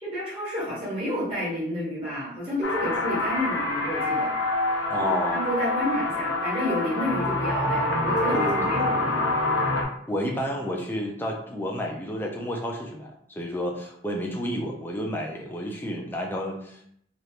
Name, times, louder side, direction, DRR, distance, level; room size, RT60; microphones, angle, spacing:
voice 1, 0.0-4.4 5.0-9.3, equal, 30° right, -8 dB, 1.4 m, -30 dB
sound 1, 2.6-9.8, left 2 dB, 90° left, 0.7 m, -26 dB
voice 2, 4.9-5.4 8.3-8.8 10.1-16.9, equal, 10° left, 0 dB, 0.5 m, -31 dB
3.2 x 2.5 x 2.8 m, 0.65 s
head